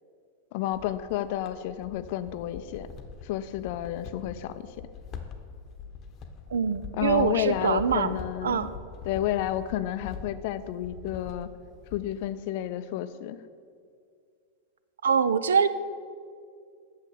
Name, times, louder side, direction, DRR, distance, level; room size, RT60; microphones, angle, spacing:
voice 1, 0.5-2.9 3.2-4.9 6.9-8.7 9.0-11.5 11.9-13.4, left 12 dB, 50° left, 13 dB, 0.5 m, -31 dB
sound 1, 0.7-12.3, left 5 dB, 30° left, 0.9 m, -44 dB
voice 2, 6.5-8.1 8.4-8.7 15.0-15.7, right 6 dB, 65° right, 14 dB, 0.4 m, -24 dB
8.9 x 6.5 x 6.9 m, 2.3 s
figure-of-eight pair, 90°, 0 cm